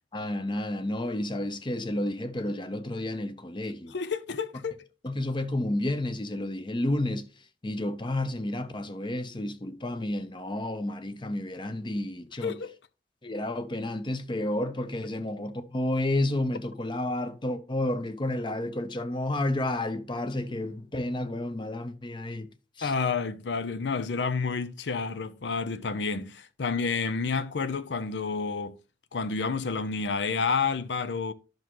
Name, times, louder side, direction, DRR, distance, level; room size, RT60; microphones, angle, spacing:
voice 1, 0.1-3.9 5.0-7.2 7.6-12.5 13.2-22.5 22.8-22.9, left 1 dB, 30° left, 0.7 m, -31 dB
voice 2, 3.9-4.8 12.4-12.8 22.8-28.8 29.1-31.3, left 5 dB, 80° left, 0.6 m, -30 dB
10.5 x 6.0 x 3.0 m
head